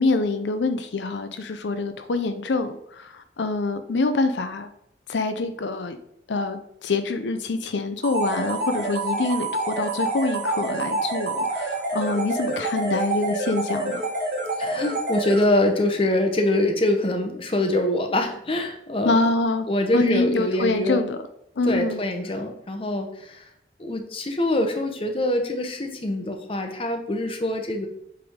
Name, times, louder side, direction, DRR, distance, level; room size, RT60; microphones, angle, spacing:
voice 1, 0.0-4.7 5.1-6.0 6.3-14.0 19.0-19.7 19.9-21.2 21.6-22.0, left 3 dB, 80° left, 9 dB, 0.5 m, -25 dB
sound 1, 8.0-15.8, right 2 dB, 60° right, 2.0 m, -27 dB
voice 2, 14.6-19.2 19.7-21.0 21.6-23.4 23.8-27.9, left 1 dB, 30° left, 4 dB, 0.8 m, -24 dB
7.7 x 3.4 x 3.6 m, 0.76 s
head